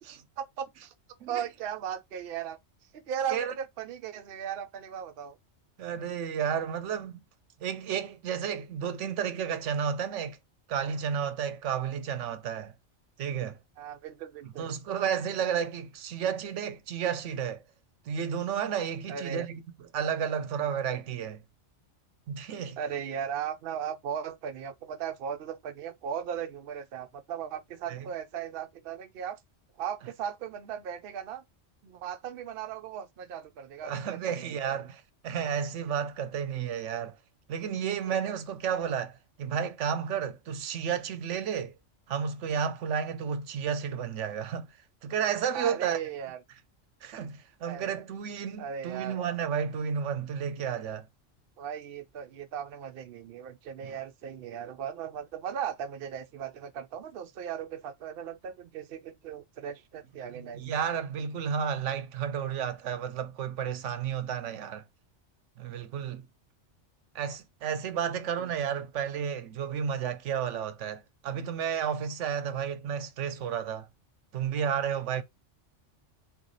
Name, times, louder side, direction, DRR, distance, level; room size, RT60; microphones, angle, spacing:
voice 1, 0.0-0.9 1.3-2.6 3.1-5.4 13.8-14.7 19.1-19.5 22.8-29.4 29.8-31.4 31.8-34.8 45.5-46.4 47.7-47.9 48.6-49.2 51.6-60.6 68.4-68.5, right 8 dB, 60° right, 0.7 m, -37 dB
voice 2, 5.8-7.2 7.6-10.4 10.7-12.7 13.2-13.6 14.6-17.6 18.1-21.4 22.3-22.8 27.9-28.1 33.8-37.2 37.5-41.8 42.1-44.7 45.0-46.0 47.0-51.1 53.8-54.0 60.3-64.8 65.6-66.3 67.1-73.9 74.3-75.2, right 8 dB, 80° right, 0.9 m, -32 dB
3.2 x 3.1 x 3.9 m
omnidirectional pair, 1.2 m